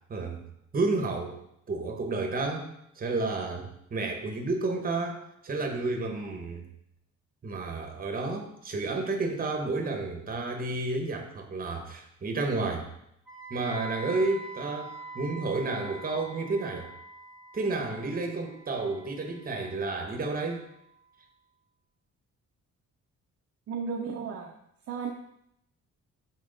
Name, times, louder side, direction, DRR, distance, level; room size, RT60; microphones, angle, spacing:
voice 1, 0.7-1.4 1.7-2.7 3.0-6.6 7.4-12.9 13.5-16.9 17.5-20.6, right 3 dB, 30° right, 3 dB, 0.9 m, -31 dB
Wind instrument woodwind instrument, 13.3-21.2, right 2 dB, ahead, 0.9 m, -45 dB
voice 2, 23.7-24.6 24.9-25.1, right 5 dB, 50° right, 1 dB, 0.5 m, -34 dB
6.1 x 4.3 x 3.8 m, 0.76 s
cardioid pair, 160°, 31 cm